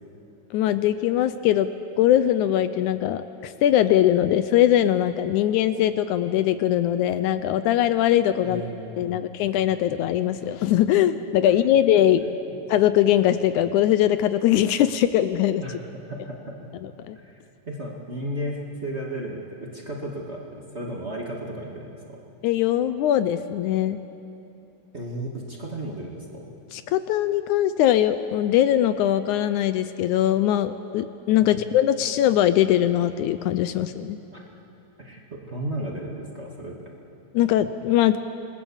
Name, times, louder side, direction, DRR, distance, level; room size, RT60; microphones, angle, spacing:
voice 1, 0.5-1.7 2.0-8.6 9.0-12.2 12.7-15.6 16.8-17.2 22.4-24.0 26.7-34.2 37.3-38.2, left 11 dB, 80° left, 12 dB, 2.0 m, -21 dB
voice 2, 8.4-9.3 11.4-11.5 15.6-15.7 16.1-16.6 17.1-17.4 17.7-21.9 24.9-26.5 31.4-31.6 34.3-34.4 35.0-36.7, right 1 dB, 25° right, -2 dB, 1.9 m, -34 dB
26.5 x 20.5 x 7.2 m, 2.9 s
omnidirectional pair, 3.6 m